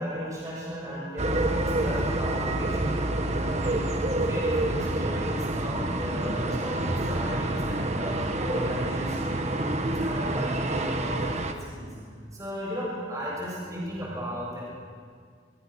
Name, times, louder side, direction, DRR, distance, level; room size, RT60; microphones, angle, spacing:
voice 1, 0.0-3.9 4.2-11.9 12.3-14.7, equal, 20° right, -5 dB, 6.8 m, -35 dB
sound 1, 1.2-11.5, right 1 dB, 35° right, 1.5 m, -28 dB
27.0 x 22.5 x 6.5 m, 2.1 s
head